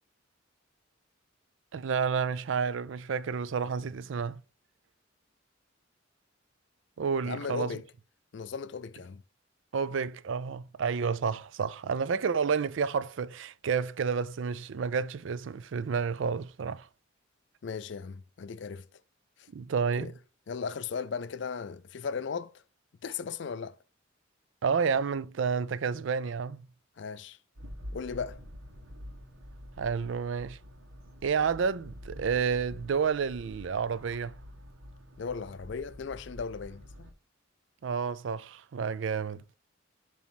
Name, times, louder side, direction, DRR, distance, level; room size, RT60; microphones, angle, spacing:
voice 1, 1.7-4.4 7.0-7.7 9.7-16.9 19.5-20.1 24.6-26.7 29.8-30.6 31.2-34.3 37.8-39.4, right 6 dB, 70° right, 0.4 m, -30 dB
voice 2, 7.2-7.8 8.3-9.2 17.6-18.9 20.0-20.1 20.5-22.5 23.0-23.8 27.0-27.4 27.9-28.4 35.2-37.1, left 5 dB, 60° left, 0.4 m, -37 dB
sound 1, 27.6-37.1, equal, 85° right, 1.4 m, -47 dB
7.2 x 3.0 x 5.9 m
head